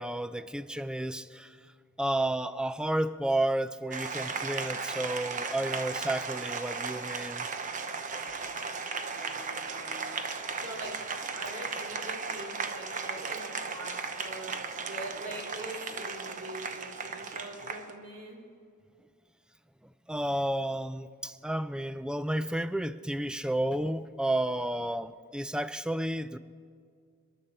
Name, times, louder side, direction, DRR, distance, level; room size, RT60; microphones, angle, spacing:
voice 1, 0.0-1.6 2.0-7.5 20.1-26.4, right 1 dB, 5° right, 0.4 m, -31 dB
Applause, 3.9-17.9, right 5 dB, 40° right, 0.9 m, -36 dB
voice 2, 8.8-10.2 10.6-18.4, right 1 dB, 70° right, 3.0 m, -44 dB
26.0 x 11.5 x 4.4 m
head